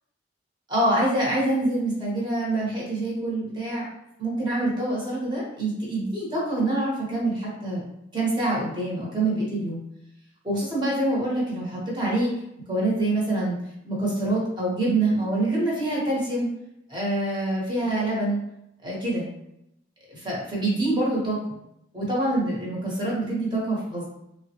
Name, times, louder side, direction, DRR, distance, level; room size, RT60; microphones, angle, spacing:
voice 1, 0.7-3.9 4.2-7.8 8.1-9.8 10.4-12.3 12.7-13.6 13.8-16.5 16.9-18.4 18.8-19.3 20.1-21.4 21.9-24.0, right 2 dB, 25° right, -5 dB, 1.0 m, -25 dB
3.3 x 2.1 x 2.8 m, 0.82 s
head